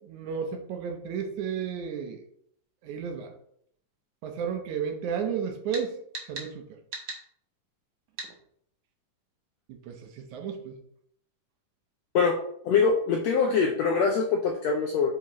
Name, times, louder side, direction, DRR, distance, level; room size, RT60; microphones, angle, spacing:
voice 1, 0.1-2.2 2.8-3.3 4.2-6.0 6.3-6.6 9.9-10.0 10.3-10.7, right 7 dB, 75° right, 4 dB, 2.1 m, -32 dB
sound 1, 5.7-5.9 6.1-6.5 6.9-7.2 8.2-8.3, right 3 dB, 50° right, 1.4 m, -37 dB
voice 2, 12.6-15.1, left 5 dB, 80° left, 2 dB, 1.5 m, -23 dB
8.6 x 4.9 x 3.1 m, 0.68 s
omnidirectional pair, 3.8 m